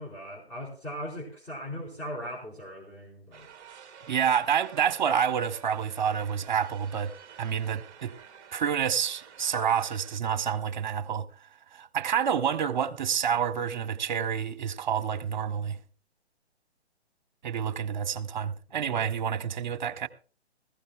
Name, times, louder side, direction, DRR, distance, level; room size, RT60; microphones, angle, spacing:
voice 1, 0.0-3.5 4.0-4.2 18.7-19.1, equal, 20° left, 4.4 m, -39 dB
sound 1, 3.3-10.2, right 8 dB, 20° right, 0.9 m, -50 dB
voice 2, 4.1-7.1 7.4-8.1 8.5-11.3 11.7-15.8 17.4-20.1, right 8 dB, 45° right, 0.9 m, -28 dB
19.5 x 15.5 x 2.3 m
figure-of-eight pair, 130°, 34 cm